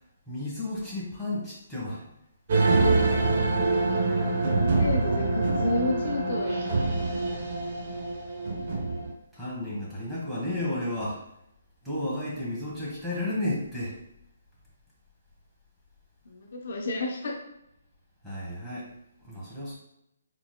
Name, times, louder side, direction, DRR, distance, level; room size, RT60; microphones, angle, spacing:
voice 1, 0.3-2.1 7.2-7.3 9.3-11.2 11.8-14.0 18.2-18.9 19.2-19.7, left 1 dB, ahead, -9 dB, 1.5 m, -32 dB
sound 1, 2.5-9.1, right 3 dB, 45° right, 1.0 m, -25 dB
voice 2, 4.4-6.6 16.3-17.3, left 2 dB, 60° left, 0 dB, 0.7 m, -31 dB
4.6 x 3.9 x 2.2 m, 0.81 s
hypercardioid pair, 145°, 0 cm